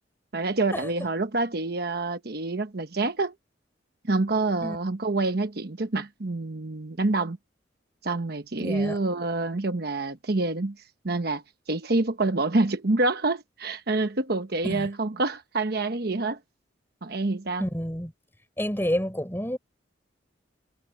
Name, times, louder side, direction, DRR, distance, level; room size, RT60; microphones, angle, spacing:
voice 1, 0.3-3.3 4.1-7.4 8.0-10.8 11.0-11.4 11.7-16.4 17.0-17.7, right 2 dB, 55° right, 1.1 m, -27 dB
voice 2, 8.6-9.0 14.7-14.9 17.6-18.1 18.6-19.6, equal, 10° left, 4.9 m, -29 dB
head